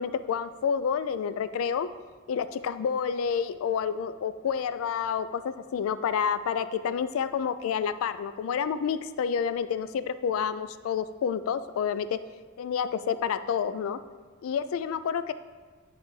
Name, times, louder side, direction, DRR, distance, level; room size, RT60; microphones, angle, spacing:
voice 1, 0.0-1.9 2.3-12.2 12.6-14.0 14.4-15.3, left 7 dB, 75° left, 13 dB, 0.3 m, -29 dB
9.7 x 3.3 x 3.2 m, 1.4 s
head